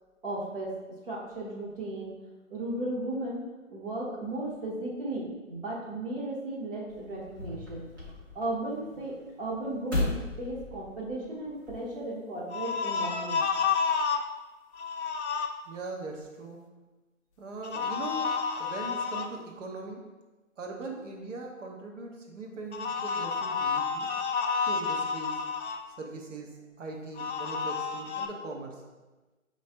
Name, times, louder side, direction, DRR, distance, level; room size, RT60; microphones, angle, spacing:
voice 1, 0.2-0.7 1.1-2.1 2.5-3.4 3.7-7.8 8.3-13.4, right 1 dB, 45° right, -5 dB, 1.0 m, -35 dB
sound 1, 6.9-11.9, left 2 dB, 15° right, 0.6 m, -37 dB
sound 2, 12.5-14.2 14.7-15.5 17.6-19.3 22.7-25.8 27.2-28.3, left 5 dB, 55° left, 0.5 m, -30 dB
voice 2, 15.6-16.6 17.4-20.1 20.6-24.1 24.6-25.4 26.0-28.8, right 2 dB, 65° right, 0 dB, 1.1 m, -40 dB
5.0 x 3.1 x 2.8 m, 1.2 s
figure-of-eight pair, 150°, 40 cm